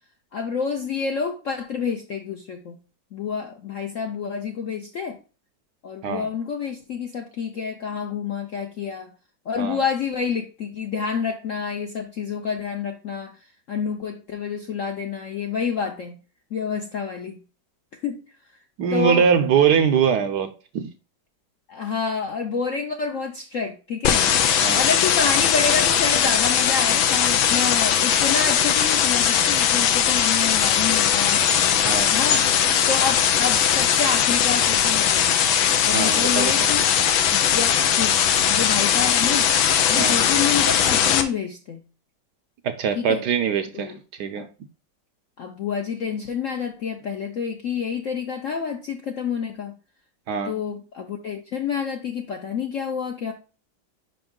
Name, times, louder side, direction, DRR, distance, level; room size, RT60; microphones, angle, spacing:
voice 1, 0.3-2.8 3.1-5.2 5.8-9.1 9.5-13.4 13.7-16.2 16.5-17.4 18.0-18.2 18.9-19.2 21.7-24.3 24.7-31.4 32.1-32.5 32.9-35.5 35.8-36.9 37.5-38.2 38.5-39.5 39.9-41.8 43.0-43.2 43.7-44.0 44.3-44.5 45.4-49.7 50.4-53.3, left 6 dB, 65° left, 0.7 m, -28 dB
voice 2, 18.8-20.9 24.6-24.9 31.8-32.2 35.9-36.7 40.0-40.2 42.6-43.9 44.2-44.5 50.3-50.6, right 7 dB, 70° right, 1.0 m, -22 dB
sound 1, 24.0-41.2, left 9 dB, 85° left, 1.5 m, -19 dB
5.4 x 5.2 x 3.7 m
omnidirectional pair, 2.1 m